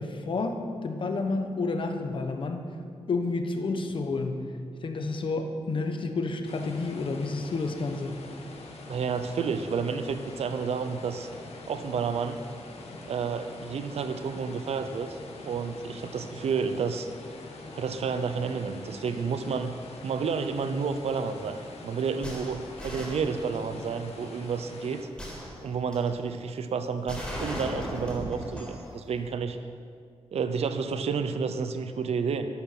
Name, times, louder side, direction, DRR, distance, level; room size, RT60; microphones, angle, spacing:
voice 1, 0.0-2.6 3.1-4.5 4.8-8.2, left 3 dB, 50° left, 5 dB, 1.2 m, -30 dB
sound 1, 6.4-25.0, left 2 dB, 75° left, 1.7 m, -45 dB
voice 2, 8.9-11.3 11.7-12.4 13.1-15.2 15.4-17.1 17.7-19.7 20.0-21.6 21.8-25.1 25.6-29.6 30.3-32.5, right 5 dB, 70° right, 9 dB, 0.7 m, -30 dB
sound 2, 22.2-23.8 25.2-26.2 27.1-28.9 29.2-29.3, equal, 5° left, 3.7 m, -37 dB
12.5 x 12.0 x 5.9 m, 2.2 s
wide cardioid pair, 170°, 11 cm